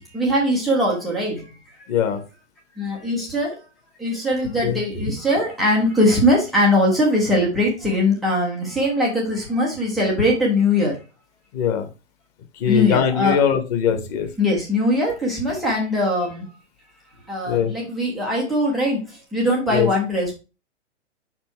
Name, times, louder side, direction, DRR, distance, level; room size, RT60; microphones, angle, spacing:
voice 1, 0.1-1.4 2.8-3.5 4.0-10.9 12.7-13.4 14.4-16.4 17.3-19.0 19.3-20.3, left 1 dB, ahead, -4 dB, 0.3 m, -21 dB
voice 2, 1.9-2.2 4.6-4.8 11.5-11.9 12.5-14.3 17.5-17.7 19.7-19.9, left 8 dB, 35° left, 7 dB, 1.2 m, -21 dB
5.4 x 4.5 x 4.4 m, 0.30 s
figure-of-eight pair, 115°, 36 cm